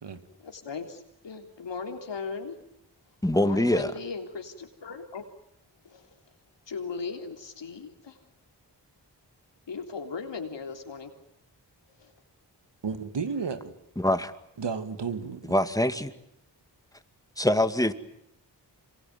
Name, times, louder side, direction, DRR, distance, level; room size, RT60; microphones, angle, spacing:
voice 1, 0.4-2.6 3.4-5.2 5.8-6.1 6.7-8.2 9.7-11.1 12.0-12.1, left 5 dB, 85° left, 5 dB, 3.5 m, -37 dB
voice 2, 3.2-3.9 14.0-14.3 15.5-16.1 17.4-17.9, left 1 dB, 10° left, 10 dB, 2.3 m, -24 dB
voice 3, 12.8-13.7 14.6-15.6, right 5 dB, 80° right, 9 dB, 2.4 m, -32 dB
26.5 x 23.5 x 9.4 m, 0.78 s
cardioid pair, 40°, 42 cm